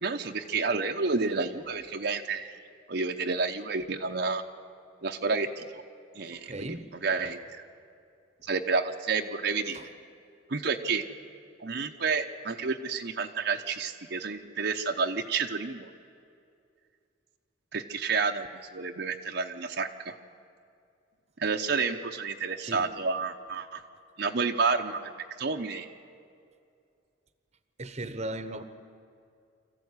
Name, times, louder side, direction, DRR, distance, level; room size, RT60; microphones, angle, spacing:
voice 1, 0.0-2.6 2.9-4.4 5.0-5.8 6.1-6.8 7.0-7.6 8.4-9.8 10.5-11.0 11.6-15.9 17.7-18.5 18.7-20.1 21.4-23.8 24.2-25.9, right 4 dB, 60° right, 3 dB, 0.9 m, -30 dB
voice 2, 1.4-1.8 6.3-6.9 9.7-9.9 22.6-23.0 27.8-28.6, right 1 dB, 35° right, 11 dB, 1.0 m, -38 dB
25.5 x 14.5 x 9.7 m, 2.4 s
head